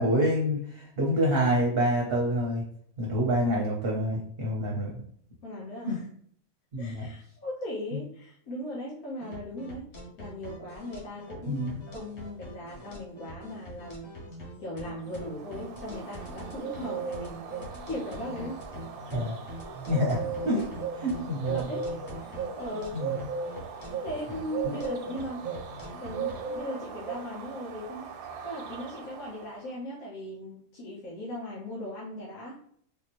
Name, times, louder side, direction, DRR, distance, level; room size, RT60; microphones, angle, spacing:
voice 1, 0.0-2.6 3.0-5.0 5.9-6.0 6.7-7.1 11.5-11.8 19.1-19.4 19.9-20.6 20.9-21.7 22.9-23.2, equal, 50° right, -2 dB, 0.8 m, -27 dB
voice 2, 5.4-6.0 6.8-9.9 10.2-14.1 14.6-17.5 17.9-18.6 20.6-20.7 21.5-21.9 22.1-23.0 24.0-25.4 26.0-28.1 28.4-32.6, equal, 85° left, -5 dB, 1.4 m, -38 dB
sound 1, 9.2-26.6, equal, 65° left, 1.3 m, -44 dB
Bird, 15.0-29.7, right 6 dB, 85° right, 1.1 m, -38 dB
3.5 x 2.8 x 2.9 m, 0.62 s
omnidirectional pair, 1.5 m